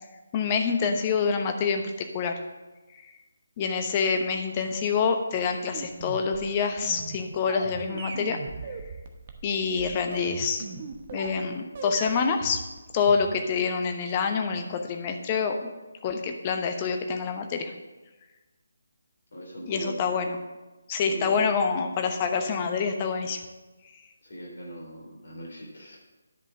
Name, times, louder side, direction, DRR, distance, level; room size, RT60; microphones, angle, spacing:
voice 1, 0.3-2.4 3.6-8.4 9.4-10.8 11.1-12.6 12.9-15.7 16.0-17.7 19.7-20.4 20.9-23.4, left 5 dB, 25° left, 5 dB, 0.9 m, -26 dB
sound 1, 5.7-11.4 11.7-13.6, right 4 dB, 35° right, 1.0 m, -39 dB
voice 2, 19.3-20.0 21.0-21.5 24.2-26.0, equal, 55° left, -2 dB, 3.8 m, -40 dB
10.5 x 5.5 x 6.3 m, 1.2 s
figure-of-eight pair, 150°, 0 cm